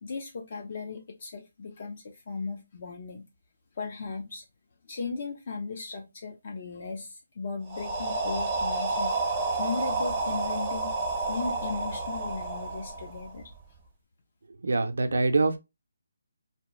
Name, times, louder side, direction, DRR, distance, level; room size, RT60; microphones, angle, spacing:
voice 1, 0.0-3.3 3.8-4.4 4.9-9.2 9.6-10.9 11.3-13.5, left 4 dB, 45° left, 0.5 m, -36 dB
sound 1, 7.7-13.6, right 3 dB, 20° right, 0.5 m, -30 dB
voice 2, 14.6-15.6, right 3 dB, 80° right, 0.5 m, -24 dB
2.8 x 2.2 x 3.0 m
hypercardioid pair, 165°, 0 cm